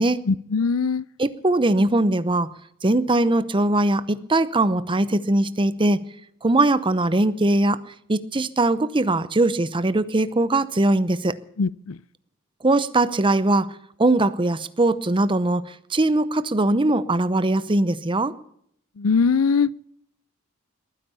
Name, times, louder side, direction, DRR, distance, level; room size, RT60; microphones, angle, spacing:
voice 1, 0.3-1.0 11.6-12.0 19.0-19.7, left 5 dB, 80° left, 0.5 m, -21 dB
voice 2, 1.2-2.5 2.8-6.0 6.4-7.8 8.1-11.4 12.6-13.7 14.0-18.3, right 2 dB, 25° right, 0.8 m, -21 dB
21.0 x 10.0 x 7.0 m
head